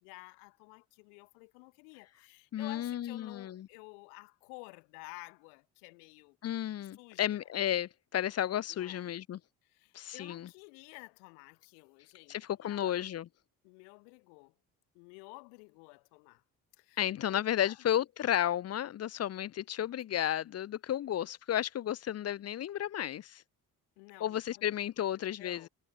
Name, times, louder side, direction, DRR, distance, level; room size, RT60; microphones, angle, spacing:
voice 1, 0.0-6.4 6.8-7.5 8.7-9.1 9.6-12.9 13.6-14.5 14.9-16.4 16.8-17.8 24.0-25.1 25.4-25.7, left 40 dB or more, 75° left, 3.0 m, -52 dB
voice 2, 2.5-3.7 6.4-9.4 9.9-10.5 12.3-13.3 17.0-23.4 24.2-25.7, left 11 dB, 35° left, 0.5 m, -33 dB
hypercardioid pair, 50°, 47 cm